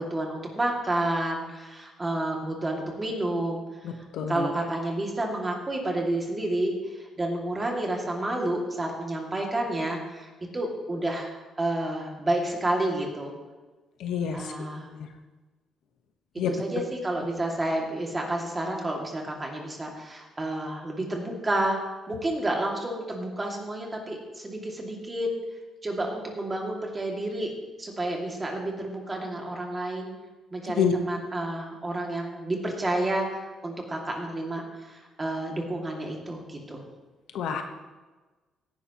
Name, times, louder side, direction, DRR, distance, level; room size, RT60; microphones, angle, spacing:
voice 1, 0.0-3.6 4.3-13.3 14.3-14.9 16.5-25.3 25.8-27.5 27.8-30.1 30.5-36.8, right 1 dB, 20° right, 0 dB, 2.4 m, -30 dB
voice 2, 3.8-4.5 14.0-14.4 16.4-16.5 30.8-30.9 37.3-37.6, left 8 dB, 80° left, 5 dB, 1.2 m, -27 dB
17.0 x 11.0 x 3.1 m, 1.3 s
cardioid pair, 120°, 0 cm